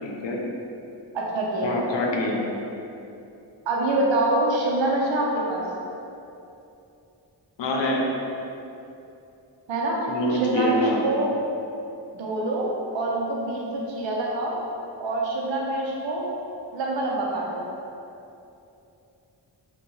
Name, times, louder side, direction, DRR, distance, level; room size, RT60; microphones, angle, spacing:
voice 1, 0.0-0.4 1.6-2.4 7.6-8.0 10.1-11.0, left 1 dB, 70° left, -1 dB, 0.7 m, -25 dB
voice 2, 1.1-1.8 3.7-5.6 9.7-10.0 10.3-11.3 12.1-14.6 15.0-16.3 16.7-17.7, right 2 dB, 80° right, -3 dB, 0.7 m, -25 dB
2.7 x 2.3 x 3.9 m, 2.8 s
cardioid pair, 45°, 44 cm